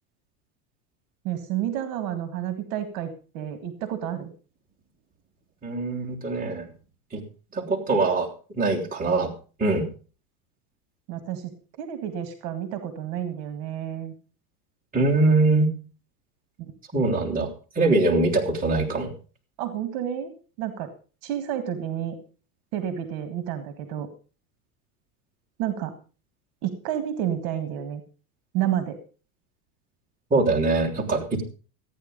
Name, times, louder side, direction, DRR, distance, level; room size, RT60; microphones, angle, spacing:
voice 1, 1.2-4.3 11.1-11.5 11.8-14.1 16.6-16.7 19.6-20.3 20.6-20.9 21.2-22.2 22.7-24.1 25.6-25.9 26.6-28.0 28.5-29.0, right 10 dB, 60° right, 10 dB, 1.9 m, -30 dB
voice 2, 5.6-6.6 7.1-7.2 7.5-8.3 8.6-9.3 9.6-9.8 14.9-15.7 16.9-19.1 30.3-31.4, right 2 dB, 20° right, -2 dB, 3.4 m, -22 dB
14.0 x 9.6 x 5.2 m, 0.37 s
supercardioid pair, 145°, 44 cm